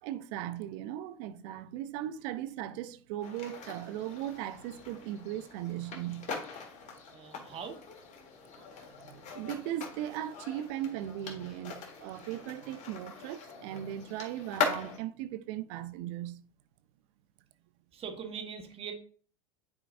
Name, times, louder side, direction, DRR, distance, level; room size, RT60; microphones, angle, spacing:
voice 1, 0.0-6.3 8.6-8.7 9.0-16.4, right 12 dB, 60° right, 0.6 m, -38 dB
sound 1, 3.2-15.0, left 5 dB, 45° left, 1.8 m, -41 dB
voice 2, 7.1-7.8 17.9-18.9, right 6 dB, 35° right, 1.4 m, -41 dB
9.6 x 4.5 x 2.6 m
hypercardioid pair, 90°, 17 cm